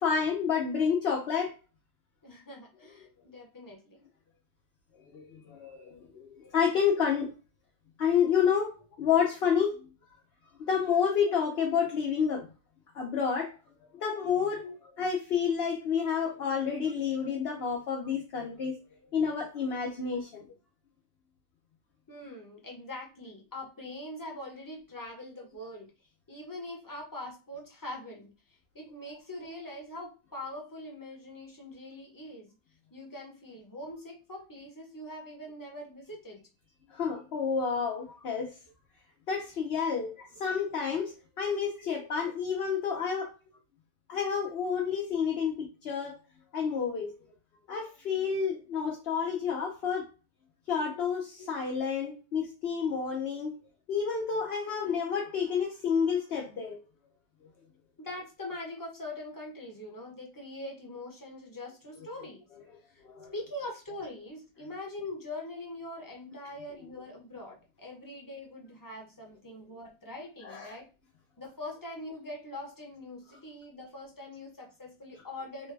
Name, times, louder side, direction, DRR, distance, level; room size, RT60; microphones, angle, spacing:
voice 1, 0.0-1.5 5.1-7.3 8.0-8.7 9.0-9.9 10.6-12.4 12.9-13.5 13.9-14.6 15.0-18.8 19.1-20.5 36.9-38.5 39.3-40.1 40.4-43.3 44.1-46.2 46.5-47.1 47.7-50.1 50.7-53.5 53.9-56.8 63.1-63.3 70.4-70.8, left 6 dB, 65° left, -1 dB, 0.9 m, -29 dB
voice 2, 2.2-4.0 14.6-14.7 15.7-16.1 17.5-17.6 18.0-18.1 20.1-20.2 22.1-25.9 26.3-32.5 32.9-36.4 38.1-38.2 40.2-40.3 41.8-42.1 42.8-43.1 48.7-48.8 50.8-51.0 51.4-51.5 54.7-54.8 58.0-62.4 62.9-63.0 63.3-70.9 71.4-75.7, left 1 dB, 20° left, 0 dB, 0.8 m, -43 dB
3.2 x 2.2 x 3.2 m, 0.33 s
omnidirectional pair, 1.2 m